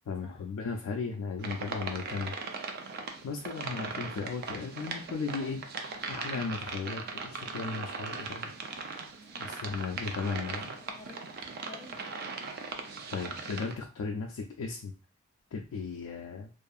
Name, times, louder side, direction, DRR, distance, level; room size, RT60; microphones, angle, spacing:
voice 1, 0.1-2.3 3.2-5.6 6.1-8.5 9.5-10.7 13.1-14.9 15.5-16.5, left 4 dB, 85° left, 2 dB, 0.3 m, -36 dB
sound 1, 1.4-13.7, right 4 dB, 45° right, 0.4 m, -39 dB
voice 2, 9.2-9.8 10.8-11.2 11.6-12.5, left 3 dB, 25° left, 2 dB, 0.5 m, -52 dB
2.6 x 2.4 x 2.3 m, 0.35 s
head